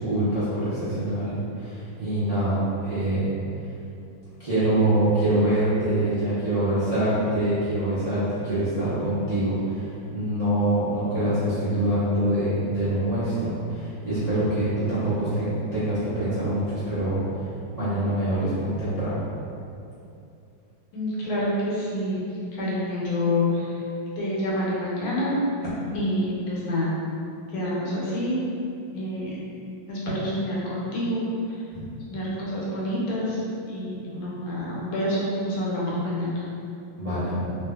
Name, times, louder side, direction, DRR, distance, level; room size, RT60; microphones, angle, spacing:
voice 1, 0.0-3.3 4.4-17.5 17.7-19.1 31.7-31.8 37.0-37.4, right 1 dB, 40° right, -16 dB, 0.5 m, -25 dB
voice 2, 20.9-23.8 24.2-25.4 25.9-27.0 27.5-28.4 28.9-29.4 29.9-31.6 32.1-33.4 33.7-36.4, left 1 dB, 90° left, -6 dB, 1.6 m, -27 dB
3.5 x 2.6 x 2.2 m, 2.6 s
omnidirectional pair, 2.2 m